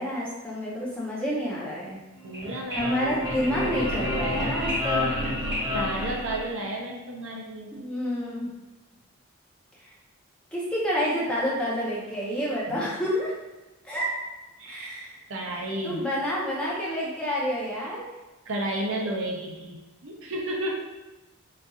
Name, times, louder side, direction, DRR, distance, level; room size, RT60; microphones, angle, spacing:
voice 1, 0.0-2.0 2.7-5.1 7.7-8.5 10.5-13.3 13.8-14.1 14.7-15.2 15.8-18.0, equal, 5° left, -7 dB, 0.6 m, -29 dB
sound 1, 2.2-6.9, left 1 dB, 25° right, 1.5 m, -29 dB
voice 2, 2.2-2.9 4.4-4.6 5.7-7.9 12.7-12.9 14.6-14.9 15.3-16.0 18.5-20.9, right 1 dB, 65° right, 0 dB, 0.5 m, -32 dB
4.0 x 2.5 x 2.3 m, 1.1 s
head